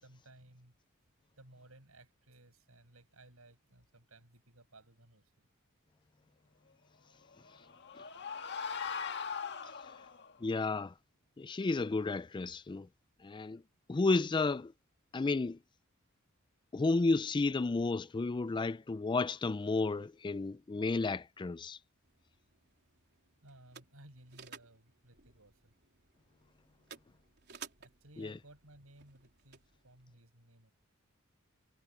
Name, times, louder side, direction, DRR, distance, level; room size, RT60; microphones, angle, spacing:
voice 1, 0.0-0.7 1.4-5.5 23.4-25.7 27.8-30.7, right 1 dB, 80° right, 7.0 m, -59 dB
sound 1, 7.3-10.3, left 6 dB, 55° left, 1.7 m, -40 dB
voice 2, 10.4-10.9 11.4-12.9 13.2-13.6 13.9-14.7 15.1-15.6 16.7-21.8 28.2-28.3, left 3 dB, 20° left, 0.3 m, -32 dB
sound 2, 22.0-30.1, right 7 dB, 50° right, 3.8 m, -56 dB
head